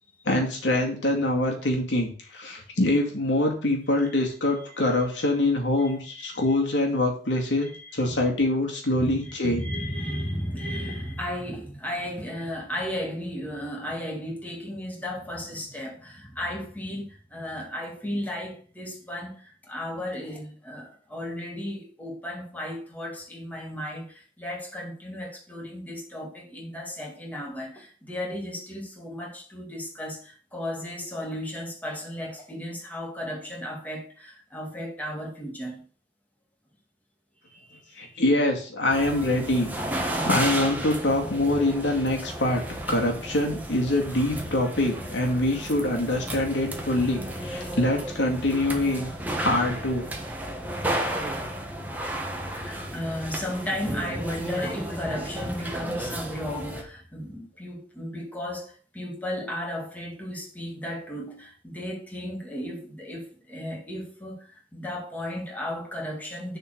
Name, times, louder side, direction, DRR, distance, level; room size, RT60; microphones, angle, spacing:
voice 1, 0.3-9.7 38.0-42.6 42.9-49.1 49.4-50.1, left 1 dB, 85° left, 2.1 m, -25 dB
voice 2, 4.6-5.0 5.8-5.9 6.2-6.4 7.6-8.2 8.9-35.8 37.4-38.2 47.0-47.1 52.4-66.6, left 1 dB, 10° left, 2.0 m, -35 dB
sound 1, 38.9-56.8, right 1 dB, 10° right, 1.2 m, -33 dB
6.9 x 4.3 x 6.5 m
head